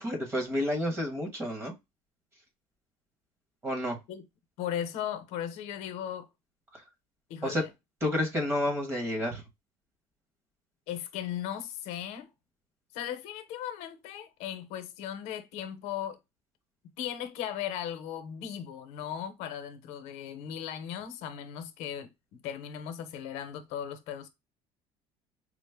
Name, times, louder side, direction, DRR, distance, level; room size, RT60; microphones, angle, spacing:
voice 1, 0.0-1.7 3.6-4.0 7.4-7.6 8.0-9.4, left 1 dB, 20° right, 1.2 m, -30 dB
voice 2, 4.6-6.3 7.3-7.7 10.9-12.3 12.9-16.2 17.0-24.3, left 10 dB, 80° left, 0.7 m, -37 dB
5.0 x 2.0 x 3.4 m
cardioid pair, 160°, 12 cm